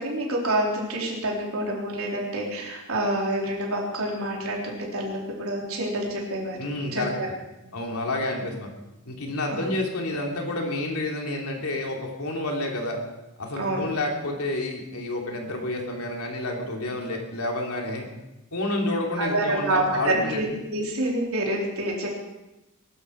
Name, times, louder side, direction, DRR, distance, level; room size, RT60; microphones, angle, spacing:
voice 1, 0.0-6.6 6.9-7.3 7.6-7.7 9.5-9.7 13.6-13.9 19.2-22.1, right 1 dB, 70° right, -2 dB, 4.1 m, -27 dB
voice 2, 6.6-7.1 7.7-8.7 9.0-13.0 13.4-18.0 18.5-20.4, left 2 dB, 85° left, 1 dB, 3.2 m, -29 dB
21.5 x 12.0 x 4.8 m, 0.96 s
head